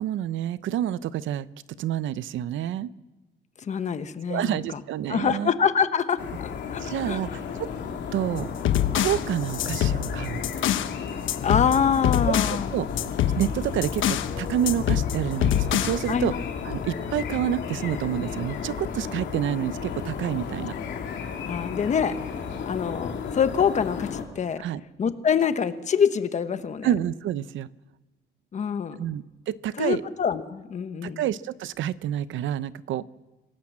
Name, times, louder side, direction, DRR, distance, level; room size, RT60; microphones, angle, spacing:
voice 1, 0.0-1.5 1.8-2.9 4.3-5.5 6.8-7.7 8.1-8.5 8.9-10.4 12.0-12.9 13.4-16.3 16.6-20.7 24.6-24.8 26.8-27.7 29.0-30.0 31.0-33.0, right 11 dB, 80° right, 16 dB, 0.8 m, -28 dB
voice 2, 3.6-4.8 5.1-7.2 11.4-12.7 16.1-16.4 21.5-22.1 22.7-24.6 25.0-26.9 28.5-29.0 29.8-31.2, left 7 dB, 35° left, 10 dB, 1.2 m, -25 dB
sound 1, 6.2-24.2, left 6 dB, 65° left, 3.4 m, -33 dB
sound 2, 8.4-10.9 11.3-12.6 13.0-14.3 14.7-16.1, left 11 dB, 80° left, 1.2 m, -25 dB
26.5 x 18.0 x 7.4 m, 1.2 s
cardioid pair, 160°, 20 cm